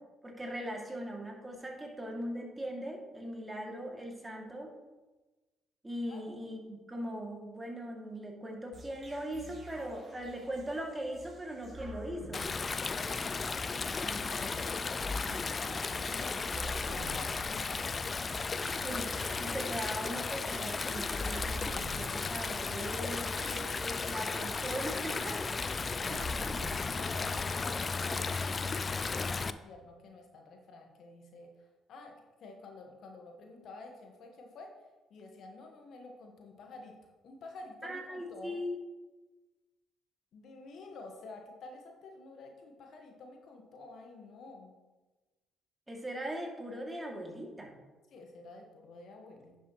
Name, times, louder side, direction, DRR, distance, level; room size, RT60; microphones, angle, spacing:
voice 1, 0.2-4.7 5.8-12.5 14.0-14.1 16.4-16.5 18.8-19.1 19.4-26.5 37.8-38.8 45.9-47.7, equal, 20° right, 0 dB, 2.3 m, -40 dB
sound 1, 8.7-27.9, left 1 dB, 40° right, 2.4 m, -47 dB
Stream, 12.3-29.5, left 4 dB, 35° left, 0.4 m, -35 dB
voice 2, 13.1-18.2 27.0-37.0 37.2-38.6 40.3-44.7 48.1-49.5, left 2 dB, 60° left, 3 dB, 1.4 m, -50 dB
10.5 x 7.0 x 3.0 m, 1.2 s
hypercardioid pair, 50°, 0 cm